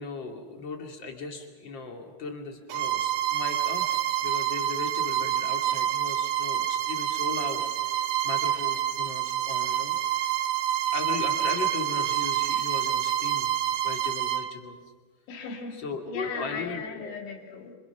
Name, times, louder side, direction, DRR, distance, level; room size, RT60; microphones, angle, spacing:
voice 1, 0.0-9.9 10.9-13.5 13.8-14.8 15.7-17.2, left 4 dB, 35° left, 2 dB, 2.1 m, -37 dB
Bowed string instrument, 2.7-14.5, right 11 dB, 75° right, 3.0 m, -27 dB
voice 2, 15.3-17.8, left 5 dB, 70° left, 1 dB, 5.4 m, -37 dB
29.0 x 26.0 x 6.0 m, 1.4 s
omnidirectional pair, 5.5 m